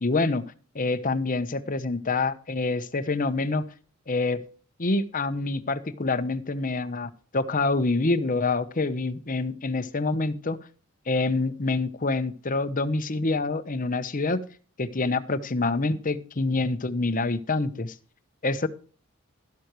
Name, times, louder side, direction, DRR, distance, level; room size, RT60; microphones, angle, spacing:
voice 1, 0.0-0.4 0.7-3.7 4.1-4.4 4.8-10.6 11.1-14.4 14.8-17.9 18.4-18.7, left 3 dB, 40° left, 0.9 m, -26 dB
13.0 x 11.5 x 3.2 m
head